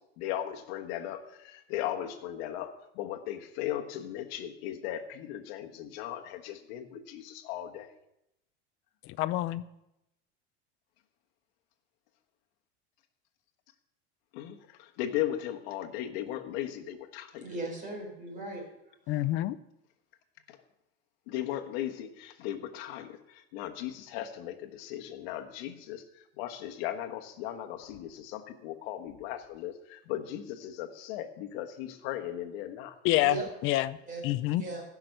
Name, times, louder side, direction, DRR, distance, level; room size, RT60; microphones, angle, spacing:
voice 1, 0.2-1.2 1.7-2.7 3.0-7.9 14.4-14.5 15.0-17.4 21.3-23.1 23.5-26.0 26.4-29.7 30.1-32.9, left 12 dB, 65° left, 6 dB, 1.4 m, -37 dB
voice 2, 9.1-9.6 19.1-19.6 33.0-34.0 34.2-34.6, left 16 dB, 40° left, 16 dB, 0.5 m, -27 dB
voice 3, 17.4-18.7 19.1-19.2 33.1-33.5 34.1-34.2 34.5-34.8, right 3 dB, 25° right, 0 dB, 4.3 m, -38 dB
15.0 x 6.1 x 6.5 m, 0.86 s
supercardioid pair, 145°, 33 cm